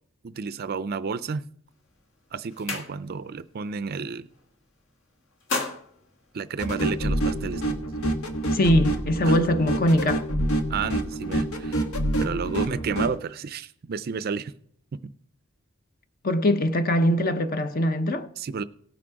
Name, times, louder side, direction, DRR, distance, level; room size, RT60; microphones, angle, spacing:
voice 1, 0.2-1.4 2.3-4.3 6.3-7.8 9.2-9.3 10.7-11.8 12.2-14.5 18.4-18.6, right 5 dB, 45° right, 0.4 m, -31 dB
sound 1, 1.7-1.9 2.2-3.4 3.7-4.0 4.3-4.9 5.2-7.1, left 3 dB, 60° left, 1.8 m, -34 dB
sound 2, 6.6-13.1, right 1 dB, 90° left, 1.4 m, -27 dB
voice 2, 8.5-10.3 16.2-18.3, left 1 dB, 45° left, 0.8 m, -22 dB
18.0 x 6.2 x 4.6 m
head